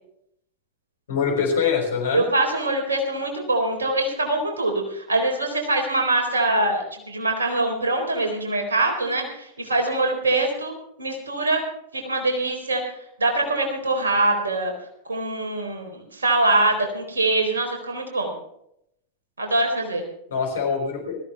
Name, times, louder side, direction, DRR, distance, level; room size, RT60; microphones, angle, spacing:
voice 1, 1.1-2.2 20.3-21.2, left 6 dB, 60° left, 2 dB, 5.2 m, -24 dB
voice 2, 2.1-10.7 11.0-11.6 11.9-12.8 13.2-14.7 15.1-18.3 19.4-20.1, right 2 dB, 75° right, 3 dB, 4.0 m, -23 dB
20.0 x 14.5 x 3.5 m, 0.74 s
figure-of-eight pair, 90°, 0 cm